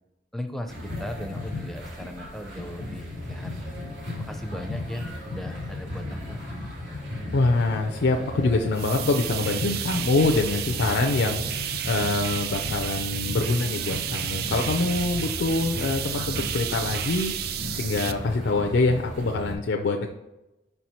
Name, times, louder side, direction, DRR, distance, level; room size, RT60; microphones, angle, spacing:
voice 1, 0.3-3.7 4.2-6.4, left 1 dB, ahead, 6 dB, 0.5 m, -38 dB
sound 1, 0.7-19.5, left 1 dB, 85° right, 1.9 m, -36 dB
voice 2, 7.3-20.1, left 3 dB, 85° left, 2 dB, 0.5 m, -25 dB
sound 2, 8.7-18.1, right 9 dB, 60° right, 0.4 m, -32 dB
5.4 x 4.5 x 4.2 m, 0.98 s
head